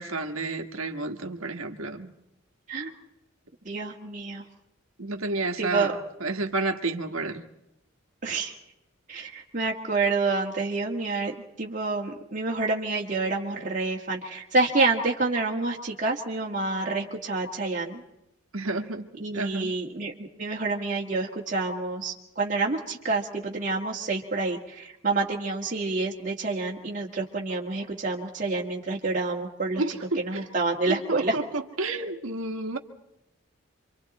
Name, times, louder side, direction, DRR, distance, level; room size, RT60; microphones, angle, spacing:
voice 1, 0.0-2.1 5.0-5.9 6.2-7.4 18.5-19.1 19.3-19.7 29.8-30.5 30.9-32.8, right 2 dB, 90° right, 5 dB, 1.6 m, -30 dB
voice 2, 3.7-4.4 5.6-5.9 8.2-8.6 9.1-11.3 11.6-18.0 19.2-29.8 30.2-31.3, right 3 dB, 40° right, -3 dB, 1.7 m, -28 dB
27.5 x 25.0 x 4.2 m, 0.87 s
head